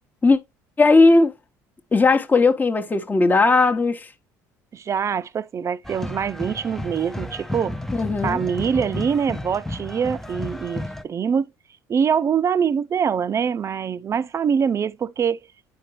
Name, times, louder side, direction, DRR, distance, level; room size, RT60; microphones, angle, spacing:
voice 1, 0.8-1.3 1.9-4.1 7.9-8.4, left 3 dB, 20° left, 1.0 m, -17 dB
voice 2, 4.7-7.8 8.2-11.5 11.9-15.5, right 7 dB, 35° right, 0.6 m, -24 dB
sound 1, 5.8-11.0, left 1 dB, 5° left, 0.6 m, -32 dB
9.8 x 4.6 x 3.2 m
supercardioid pair, 80°, 8 cm